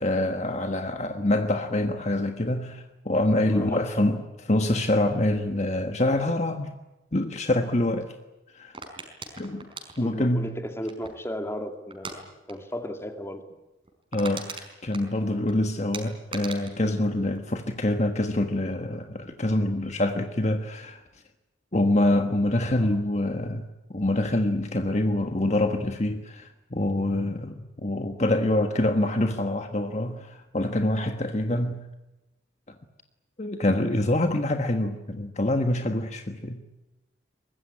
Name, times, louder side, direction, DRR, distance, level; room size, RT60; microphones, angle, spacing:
voice 1, 0.0-6.8 7.1-8.1 8.5-8.8 9.4-9.6 10.0-10.5 14.1-21.0 21.7-31.8 33.4-36.6, left 1 dB, 40° left, 6 dB, 1.4 m, -25 dB
voice 2, 3.5-3.9 10.0-13.5 22.8-23.0, equal, 15° left, 6 dB, 2.4 m, -35 dB
sound 1, 8.7-11.3 11.9-12.2 12.5-12.7 13.0-13.1 13.5-13.6 13.8-15.5 15.9-18.0 18.3-18.7, right 4 dB, 30° right, 5.0 m, -40 dB
23.5 x 21.5 x 10.0 m, 1.0 s
head